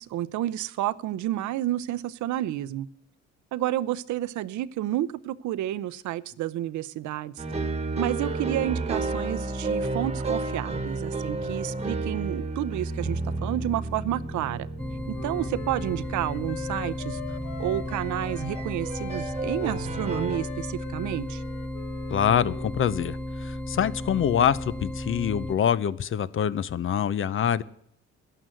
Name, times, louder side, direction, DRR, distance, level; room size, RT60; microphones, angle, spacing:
voice 1, 0.0-2.9 3.5-7.3 8.0-14.7 15.1-21.4, right 13 dB, 70° right, 18 dB, 0.7 m, -30 dB
sound 1, 7.4-20.4, right 3 dB, 20° right, 1.5 m, -32 dB
sound 2, 14.8-25.6, equal, 5° left, 0.6 m, -34 dB
Wind instrument woodwind instrument, 15.1-18.6 18.9-22.8, left 9 dB, 80° left, 1.2 m, -43 dB
voice 2, 22.1-27.6, left 9 dB, 45° left, 19 dB, 0.7 m, -25 dB
11.5 x 11.0 x 7.7 m, 0.69 s
cardioid pair, 100°, 30 cm